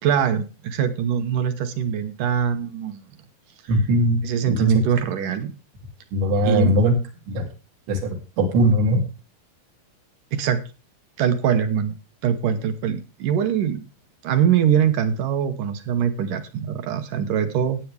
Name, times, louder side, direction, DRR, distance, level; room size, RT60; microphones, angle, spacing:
voice 1, 0.0-3.0 4.2-5.5 6.4-6.8 10.3-10.6 11.2-11.9 12.2-13.8 14.2-17.8, right 8 dB, 70° right, 10 dB, 2.1 m, -23 dB
voice 2, 3.7-4.2 4.5-4.7 6.1-7.0 7.3-7.5 7.9-9.0, equal, 90° right, 2 dB, 5.0 m, -20 dB
15.5 x 9.4 x 3.4 m, 0.32 s
omnidirectional pair, 4.9 m